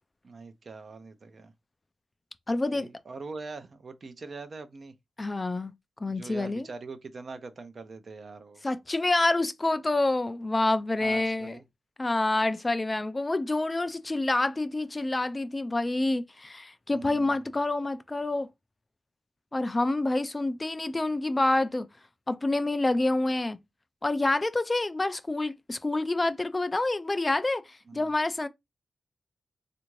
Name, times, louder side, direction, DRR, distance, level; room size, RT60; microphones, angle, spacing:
voice 1, 0.2-1.5 2.7-4.9 6.1-8.6 11.0-11.6 16.9-17.6 27.9-28.1, right 4 dB, 50° right, 0.6 m, -43 dB
voice 2, 2.5-2.9 5.2-5.7 6.0-6.6 8.6-11.6 12.0-18.5 19.5-21.9 22.3-23.6 24.0-28.5, left 2 dB, 25° left, 0.3 m, -27 dB
3.4 x 2.5 x 3.0 m
cardioid pair, 75°, 0 cm